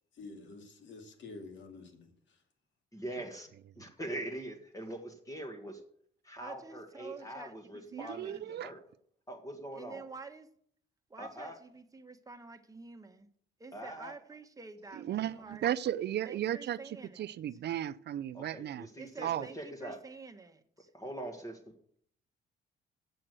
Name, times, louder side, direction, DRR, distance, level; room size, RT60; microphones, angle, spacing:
voice 1, 0.1-2.4, left 3 dB, 65° left, 2.5 m, -49 dB
voice 2, 2.9-3.5 3.8-5.8 6.2-8.3 8.6-8.8 9.3-10.0 11.2-11.6 13.7-14.2 18.3-19.3 19.5-20.0 20.9-21.6, right 1 dB, 15° left, 1.7 m, -42 dB
voice 3, 6.4-8.7 9.7-10.5 11.1-13.3 13.6-15.7 16.2-17.3 19.0-20.9, right 4 dB, 15° right, 1.3 m, -49 dB
voice 4, 7.9-8.7 14.9-18.9 19.2-19.5, right 11 dB, 60° right, 0.5 m, -35 dB
8.7 x 7.7 x 8.0 m
cardioid pair, 90°, 20 cm